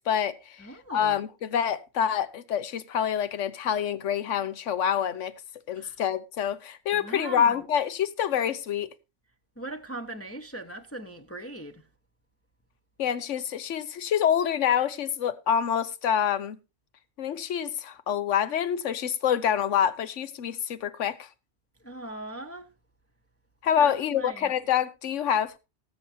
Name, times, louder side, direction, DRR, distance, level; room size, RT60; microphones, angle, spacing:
voice 1, 0.1-5.3 5.7-8.9 13.0-16.6 17.2-21.3 23.6-25.5, left 8 dB, 75° left, 1.2 m, -27 dB
voice 2, 0.6-1.2 5.8-6.0 6.9-7.5 9.6-11.8 21.8-22.7 23.8-24.5, right 1 dB, 15° left, 0.8 m, -39 dB
19.0 x 8.0 x 2.7 m
omnidirectional pair, 1.3 m